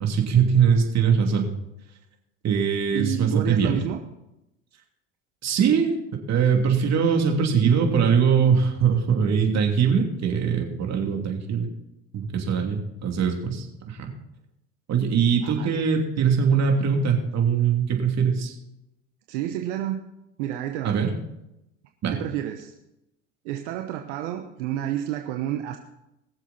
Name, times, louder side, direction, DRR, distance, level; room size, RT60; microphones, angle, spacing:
voice 1, 0.0-1.5 2.4-3.8 5.4-5.9 6.3-11.7 12.1-14.1 14.9-18.5 20.8-21.1 22.0-22.1, right 6 dB, 45° right, 2 dB, 3.0 m, -22 dB
voice 2, 2.9-4.0 15.4-15.7 19.3-20.0 20.4-21.1 22.1-22.7 23.4-25.8, right 12 dB, 75° right, 4 dB, 1.1 m, -30 dB
21.5 x 7.4 x 4.3 m, 0.88 s
hypercardioid pair, 80°, 36 cm